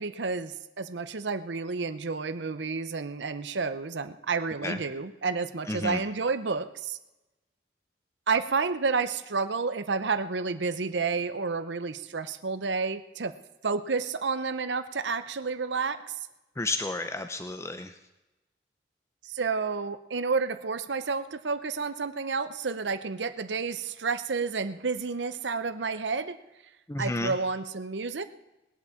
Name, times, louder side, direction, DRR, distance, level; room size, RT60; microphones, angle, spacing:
voice 1, 0.0-7.0 8.3-13.3 13.6-16.2 19.2-26.4 27.0-28.2, right 4 dB, 90° right, 12 dB, 0.8 m, -30 dB
voice 2, 5.7-6.0 16.6-18.0 26.9-27.3, left 2 dB, 15° left, 7 dB, 0.6 m, -31 dB
19.5 x 8.3 x 7.0 m, 1.0 s
head